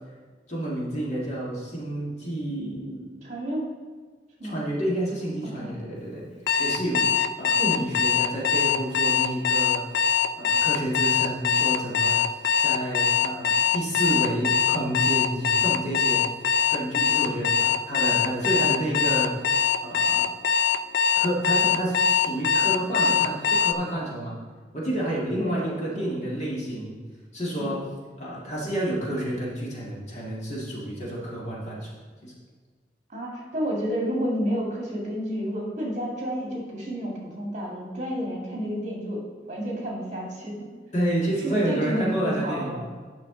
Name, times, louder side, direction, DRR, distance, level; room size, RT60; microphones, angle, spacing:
voice 1, 0.5-3.1 4.4-6.2 6.6-7.1 7.4-9.8 10.4-12.2 12.6-16.3 16.7-19.3 19.8-20.3 21.1-24.4 24.7-27.0 27.3-27.8 28.2-32.0 32.2-32.3 40.9-42.8, right 1 dB, 40° left, -5 dB, 2.0 m, -29 dB
voice 2, 3.2-3.7 4.4-4.6 5.4-5.8 25.3-26.2 27.6-27.7 33.1-40.7 41.4-42.8, equal, 40° right, -3 dB, 2.0 m, -30 dB
Alarm, 6.5-23.7, left 7 dB, 70° left, 0.4 m, -22 dB
10.0 x 5.8 x 3.8 m, 1.5 s
head